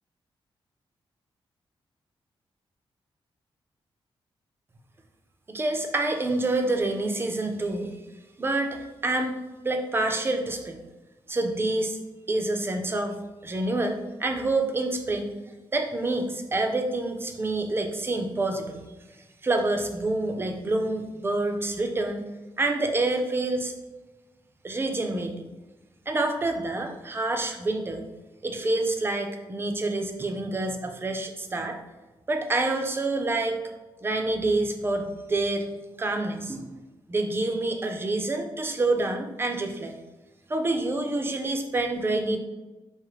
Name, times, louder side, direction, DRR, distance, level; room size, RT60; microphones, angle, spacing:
voice 1, 5.5-8.0 8.4-9.4 9.6-10.8 11.3-12.0 12.3-13.2 13.4-15.3 15.7-18.8 19.4-22.2 22.6-23.7 24.6-25.5 26.1-28.1 28.4-31.8 32.3-33.6 34.0-35.7 36.0-36.8 37.1-39.9 40.5-42.4, right 2 dB, 25° right, 4 dB, 0.5 m, -27 dB
4.8 x 2.1 x 4.7 m, 1.1 s
wide cardioid pair, 130°, 9 cm